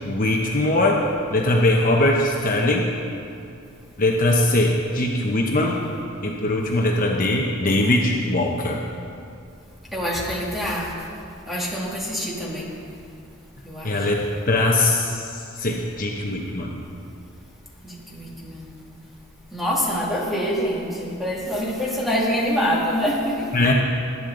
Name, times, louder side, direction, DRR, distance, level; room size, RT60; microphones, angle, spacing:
voice 1, 0.0-1.0 1.3-2.9 4.0-5.9 6.2-8.8 13.8-16.8 23.5-23.7, left 1 dB, 40° left, -1 dB, 1.0 m, -21 dB
voice 2, 9.9-10.9 11.5-12.7 13.6-14.1 17.8-18.7 19.5-23.5, equal, ahead, -5 dB, 2.3 m, -25 dB
20.5 x 10.5 x 3.9 m, 2.5 s
head